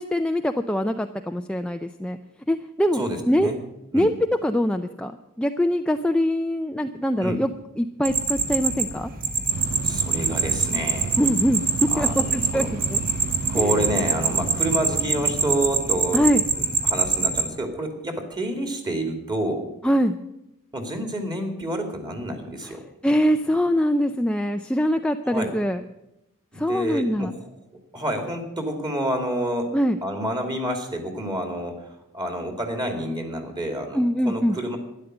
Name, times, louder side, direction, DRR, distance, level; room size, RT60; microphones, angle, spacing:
voice 1, 0.0-2.2 2.5-3.5 3.9-4.1 4.4-5.1 5.4-7.5 7.8-9.1 11.2-11.6 12.0-12.6 12.9-13.0 13.6-13.7 16.1-16.4 19.8-20.1 23.0-25.8 26.6-27.3 29.7-30.0 33.9-34.6, equal, 5° left, 6 dB, 0.4 m, -23 dB
voice 2, 2.9-3.6 3.9-4.1 7.2-7.4 9.8-11.2 11.9-12.7 13.5-16.3 16.6-19.7 20.7-22.8 25.2-25.5 26.5-27.3 27.9-29.7 30.0-31.7 32.1-34.8, right 1 dB, 20° right, 5 dB, 2.5 m, -28 dB
sound 1, 8.1-17.4, right 5 dB, 40° right, 1.7 m, -25 dB
sound 2, 9.5-15.8, right 5 dB, 70° right, 0.5 m, -33 dB
12.5 x 11.0 x 7.9 m, 0.89 s
head